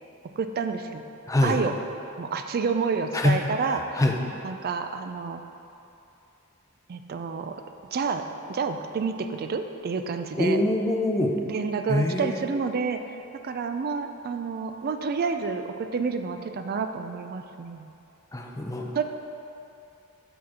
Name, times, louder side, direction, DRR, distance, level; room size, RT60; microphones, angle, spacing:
voice 1, 0.4-1.0 1.4-1.8 2.2-4.0 4.4-5.4 6.9-7.6 7.9-10.6 11.4-13.0 13.4-17.9 19.0-19.1, right 5 dB, 45° right, 7 dB, 0.4 m, -29 dB
voice 2, 1.3-1.6 3.1-3.4 4.0-4.2 10.4-11.4 11.9-12.5 18.3-18.9, left 1 dB, 15° left, 1 dB, 0.5 m, -24 dB
5.9 x 4.7 x 4.8 m, 2.7 s
head